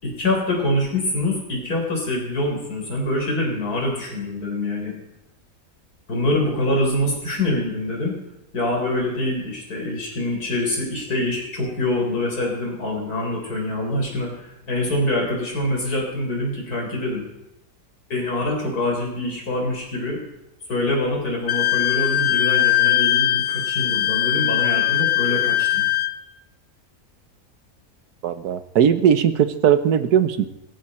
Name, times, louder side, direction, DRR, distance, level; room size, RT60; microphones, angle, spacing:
voice 1, 0.0-5.0 6.1-8.2 8.5-17.3 18.1-20.2 20.7-25.9, left 1 dB, 75° left, 0 dB, 4.5 m, -25 dB
Wind instrument woodwind instrument, 21.5-26.1, left 13 dB, 55° left, 0.7 m, -20 dB
voice 2, 28.2-30.5, right 8 dB, 85° right, 11 dB, 1.5 m, -18 dB
17.5 x 14.5 x 4.3 m, 0.90 s
omnidirectional pair, 1.6 m